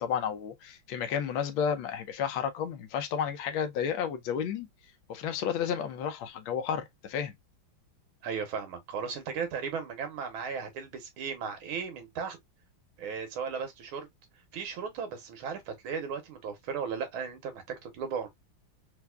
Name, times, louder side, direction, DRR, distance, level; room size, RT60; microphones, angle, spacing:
voice 1, 0.0-4.7 5.1-7.3, left 8 dB, 80° left, 1.4 m, -32 dB
voice 2, 8.2-12.4 13.0-14.1 14.5-18.3, right 6 dB, 90° right, 1.7 m, -36 dB
4.5 x 2.5 x 2.2 m
omnidirectional pair, 2.2 m